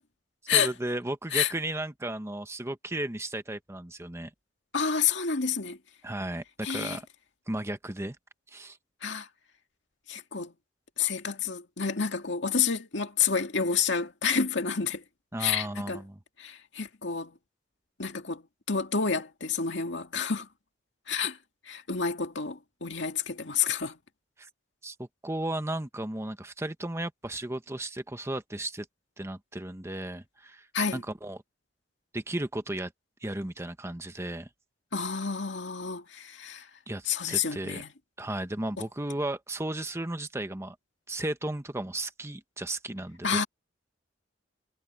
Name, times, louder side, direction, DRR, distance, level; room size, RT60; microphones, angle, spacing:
voice 1, 0.5-4.3 6.0-7.1 7.5-8.2 8.5-8.8 15.3-16.2 24.4-24.5 24.8-28.9 29.2-30.7 30.9-31.4 32.1-32.9 33.2-34.5 36.9-37.8 38.2-40.7 41.1-43.4, right 1 dB, 15° right, 1.0 m, -34 dB
voice 2, 4.7-5.8 6.6-7.0 9.0-9.3 10.1-10.5 11.0-15.0 15.4-16.0 16.4-17.3 18.0-18.4 18.7-20.5 21.1-21.4 21.7-23.9 30.7-31.0 34.9-36.7 37.1-37.9 43.2-43.5, left 6 dB, 65° left, 2.3 m, -29 dB
head